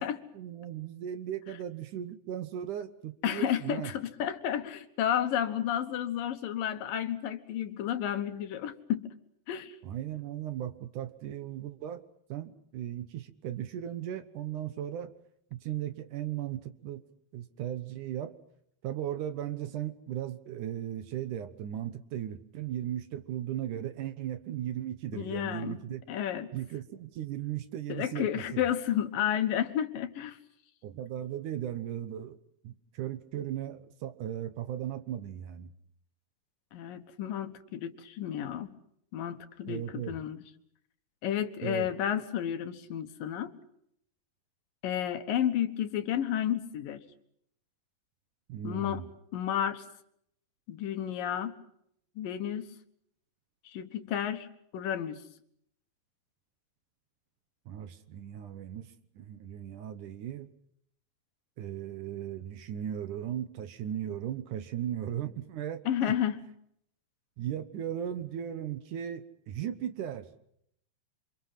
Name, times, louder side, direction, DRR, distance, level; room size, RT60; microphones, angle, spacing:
voice 1, 0.3-3.9 9.8-12.0 12.3-15.1 15.5-17.0 17.3-18.4 18.8-26.0 26.5-28.6 30.8-32.4 32.6-35.7 39.7-40.2 41.6-41.9 48.5-49.1 57.7-58.9 59.2-60.5 61.6-66.1 67.4-70.3, right 10 dB, 65° right, 11 dB, 2.5 m, -37 dB
voice 2, 3.2-9.1 9.5-9.8 25.1-25.8 26.1-26.5 27.9-30.4 36.7-38.7 39.1-40.4 41.2-43.5 44.8-47.0 48.6-49.0 49.3-49.8 50.7-51.5 52.2-52.7 53.7-54.5 54.7-55.2 65.9-66.4, left 10 dB, 75° left, 9 dB, 3.0 m, -31 dB
28.0 x 26.0 x 5.7 m, 0.71 s
omnidirectional pair, 4.1 m